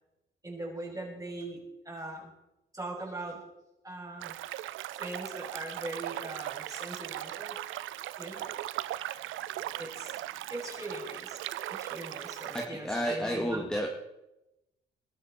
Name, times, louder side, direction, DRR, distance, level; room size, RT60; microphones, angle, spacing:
voice 1, 0.4-2.3 2.7-3.4 3.8-4.3 4.9-7.6 8.2-8.5 9.8-10.1 10.5-11.4 11.7-13.6, right 2 dB, 15° right, -1 dB, 6.5 m, -40 dB
sound 1, 4.2-12.7, right 14 dB, 85° right, 0.7 m, -38 dB
voice 2, 12.5-13.9, equal, 5° left, 0 dB, 2.1 m, -31 dB
21.0 x 13.5 x 4.4 m, 0.92 s
cardioid pair, 90°, 20 cm